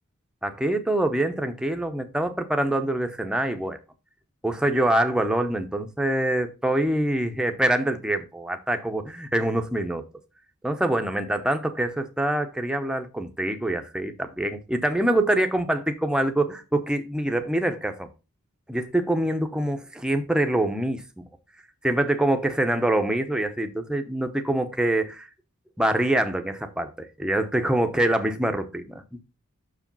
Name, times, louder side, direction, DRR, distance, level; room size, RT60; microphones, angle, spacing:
voice 1, 0.4-3.8 4.4-10.0 10.6-18.1 18.7-21.3 21.8-25.3 25.8-29.2, right 1 dB, 5° right, 0.7 m, -25 dB
6.4 x 5.0 x 5.2 m
head